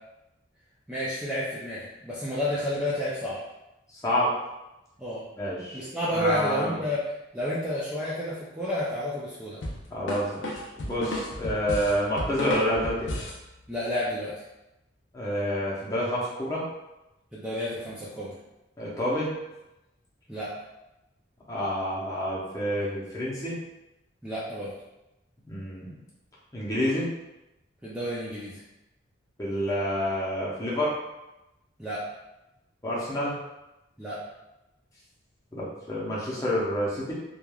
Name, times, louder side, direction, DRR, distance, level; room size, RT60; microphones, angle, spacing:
voice 1, 0.9-3.4 5.0-5.2 5.7-7.0 7.3-9.6 13.7-14.3 17.3-18.4 20.3-20.5 24.2-24.7 27.8-28.6 31.8-32.0 34.0-34.2, left 1 dB, 5° right, -9 dB, 0.4 m, -30 dB
voice 2, 5.4-5.8 6.1-6.7 9.9-13.1 15.1-16.6 18.8-19.3 21.5-23.6 25.5-25.9 26.5-27.1 29.4-31.0 32.8-33.3 35.5-37.1, equal, 20° left, -7 dB, 0.7 m, -28 dB
sound 1, 9.6-13.4, left 1 dB, 80° left, 0.5 m, -33 dB
3.2 x 2.3 x 2.3 m, 0.95 s
head